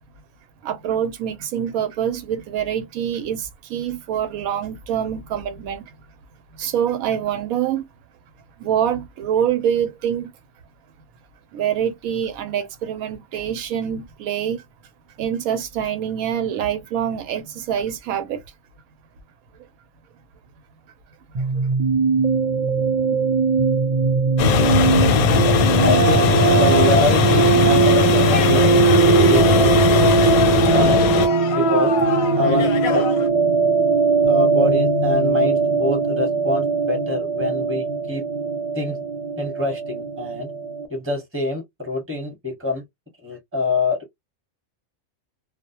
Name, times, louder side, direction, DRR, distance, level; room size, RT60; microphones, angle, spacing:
voice 1, 0.6-5.9 6.5-7.8 8.6-10.3 11.5-14.6 15.2-18.4 21.3-21.6, right 9 dB, 80° right, 1.0 m, -25 dB
sound 1, 21.3-40.9, right 5 dB, 50° right, 0.4 m, -20 dB
sound 2, 24.4-31.3, left 6 dB, 90° left, 1.0 m, -18 dB
voice 2, 25.8-30.2 30.7-31.9 32.4-33.1 34.3-38.2 38.7-39.0 39.4-40.5 40.9-42.8 43.2-44.1, left 2 dB, 10° right, 1.0 m, -25 dB
sound 3, 27.9-33.3, left 6 dB, 60° left, 0.7 m, -29 dB
2.3 x 2.1 x 2.8 m
omnidirectional pair, 1.5 m